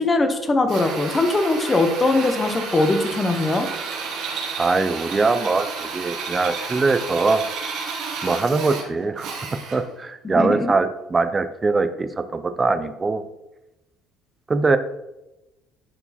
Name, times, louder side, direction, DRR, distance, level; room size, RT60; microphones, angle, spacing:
voice 1, 0.0-3.7 10.2-10.7, left 2 dB, 20° left, 7 dB, 1.0 m, -21 dB
Drill, 0.7-9.9, right 5 dB, 65° right, 1.8 m, -31 dB
voice 2, 4.6-5.7 5.9-7.4 8.2-9.3 9.7-13.2 14.5-14.8, right 3 dB, 20° right, 11 dB, 0.6 m, -22 dB
11.0 x 4.8 x 4.2 m, 0.95 s
cardioid pair, 145°, 0 cm